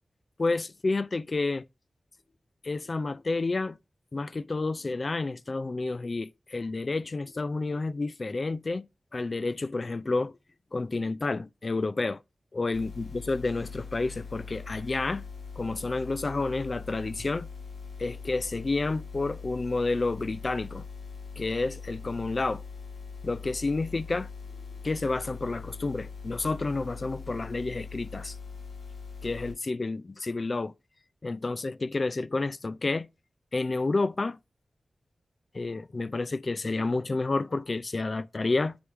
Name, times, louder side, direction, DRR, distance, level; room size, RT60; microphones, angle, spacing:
voice 1, 0.4-1.6 2.6-3.8 4.1-8.9 9.1-10.4 10.7-12.2 12.5-15.2 15.6-17.5 18.0-20.9 21.4-22.6 23.2-24.3 24.8-28.4 29.2-30.7 31.2-33.1 33.5-34.4 35.5-38.8, left 3 dB, 45° left, 0.3 m, -30 dB
sound 1, 12.7-29.5, left 5 dB, 90° left, 1.4 m, -42 dB
8.5 x 3.4 x 4.4 m
wide cardioid pair, 80°, 0 cm